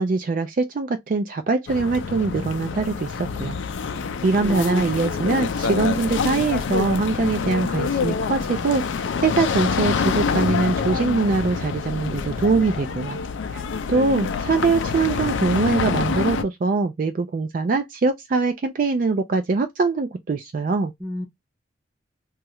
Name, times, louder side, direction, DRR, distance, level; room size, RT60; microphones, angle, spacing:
voice 1, 0.0-3.6 4.2-8.8 9.2-13.2 13.5-13.6 13.9-20.9, right 4 dB, 45° right, 0.3 m, -22 dB
sound 1, 1.7-16.4, left 5 dB, 80° left, 0.4 m, -26 dB
voice 2, 4.4-4.9 21.0-21.2, equal, 10° right, 0.7 m, -29 dB
2.8 x 2.3 x 3.0 m
head